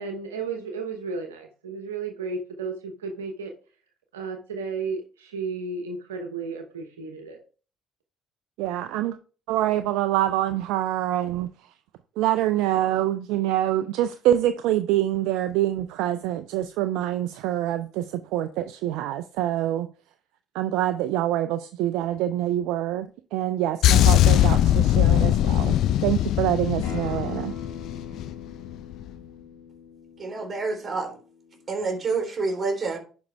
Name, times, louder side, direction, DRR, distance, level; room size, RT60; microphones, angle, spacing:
voice 1, 0.0-3.5 4.1-7.4, right 4 dB, 90° right, 0.9 m, -33 dB
voice 2, 8.6-9.2 9.5-11.5 12.2-19.9 20.5-25.8 26.0-27.5, right 13 dB, 75° right, 0.4 m, -25 dB
sound 1, 23.8-28.4 28.6-28.9, left 12 dB, 65° left, 0.5 m, -20 dB
Acoustic guitar, 26.8-32.0, left 5 dB, 90° left, 4.7 m, -41 dB
voice 3, 30.2-31.2 31.7-33.0, right 4 dB, 35° right, 3.5 m, -28 dB
10.5 x 5.3 x 3.4 m
hypercardioid pair, 55°, 0 cm